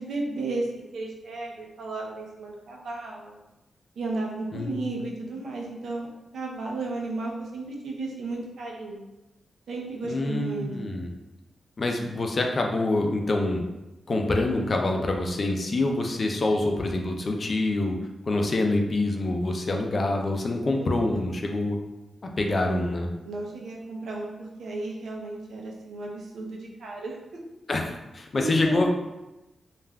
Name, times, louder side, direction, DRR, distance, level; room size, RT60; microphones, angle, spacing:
voice 1, 0.0-3.4 4.0-6.1 6.3-9.0 9.7-11.0 20.8-21.2 22.4-27.2 28.3-28.9, right 2 dB, 80° right, -1 dB, 0.6 m, -34 dB
voice 2, 10.1-11.1 11.8-13.6 14.1-18.0 18.3-21.8 22.4-23.1 27.7-28.9, left 2 dB, 50° left, 2 dB, 0.4 m, -26 dB
3.3 x 2.4 x 2.2 m, 0.99 s
cardioid pair, 65°, 0 cm